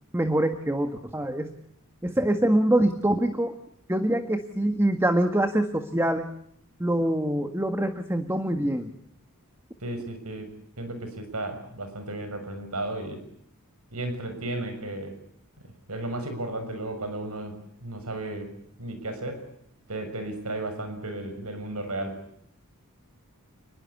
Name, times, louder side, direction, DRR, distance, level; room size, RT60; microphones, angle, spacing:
voice 1, 0.1-1.6 2.0-3.5 3.9-6.3 6.8-8.9, right 1 dB, 10° right, 7 dB, 1.6 m, -24 dB
voice 2, 9.8-10.5 10.8-13.2 13.9-15.1 15.9-17.5 17.8-18.5 18.8-19.5 19.9-22.2, right 2 dB, 80° right, 8 dB, 6.6 m, -34 dB
29.5 x 21.5 x 8.5 m, 0.69 s
head